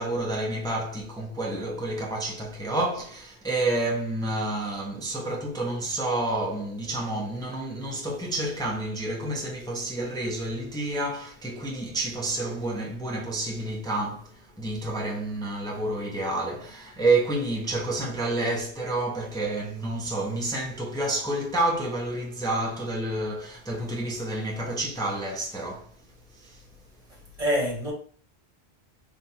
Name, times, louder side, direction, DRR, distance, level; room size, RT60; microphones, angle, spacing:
voice 1, 0.0-26.0 26.3-26.6, right 2 dB, 5° left, 0.7 m, -29 dB
voice 2, 27.1-27.9, equal, 35° right, 1.6 m, -27 dB
3.6 x 2.5 x 4.2 m
omnidirectional pair, 1.1 m